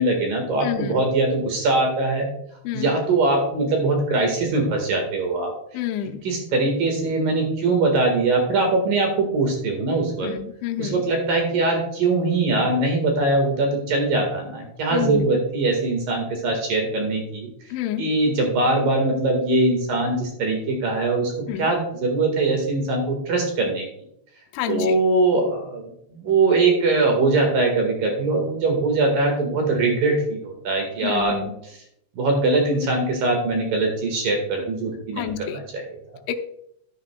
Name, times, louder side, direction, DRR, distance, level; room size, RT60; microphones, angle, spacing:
voice 1, 0.0-2.3 2.7-5.5 6.2-10.3 10.8-17.5 18.0-21.3 21.6-23.8 24.7-31.4 32.2-35.8, right 2 dB, 60° right, 2 dB, 2.5 m, -22 dB
voice 2, 0.6-1.0 2.7-2.9 5.7-6.2 10.2-11.0 14.9-15.3 17.7-18.0 21.5-21.7 24.5-25.0 31.0-31.5 35.2-35.6 36.3-36.4, left 10 dB, 80° left, 5 dB, 2.9 m, -28 dB
12.0 x 11.5 x 2.2 m, 0.73 s
omnidirectional pair, 5.8 m